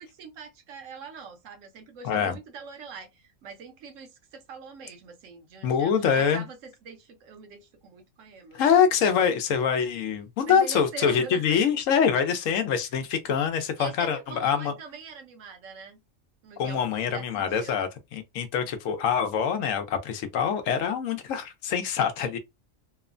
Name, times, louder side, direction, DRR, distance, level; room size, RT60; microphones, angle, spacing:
voice 1, 0.0-8.7 10.5-11.4 13.8-16.0 16.4-17.8, right 5 dB, 75° right, 1.0 m, -43 dB
voice 2, 2.0-2.4 5.6-6.4 8.5-14.7 16.6-22.4, left 7 dB, 80° left, 1.0 m, -25 dB
2.9 x 2.1 x 2.4 m
omnidirectional pair, 1.3 m